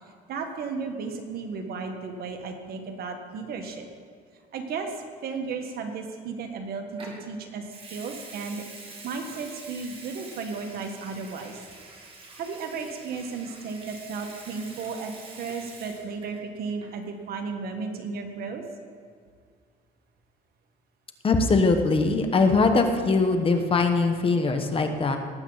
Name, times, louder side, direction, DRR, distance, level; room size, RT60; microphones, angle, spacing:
voice 1, 0.3-3.9 4.5-8.6 9.0-11.6 12.3-15.1 15.4-18.6, right 4 dB, 65° right, 4 dB, 1.6 m, -34 dB
Water tap faucet / Sink (filling or washing) / Liquid, 7.0-7.2 7.7-16.4 16.7-17.0, right 3 dB, 30° right, 2.4 m, -46 dB
voice 2, 21.2-25.2, left 3 dB, 35° left, 6 dB, 1.1 m, -21 dB
18.5 x 8.2 x 4.0 m, 2.1 s
cardioid pair, 110°, 17 cm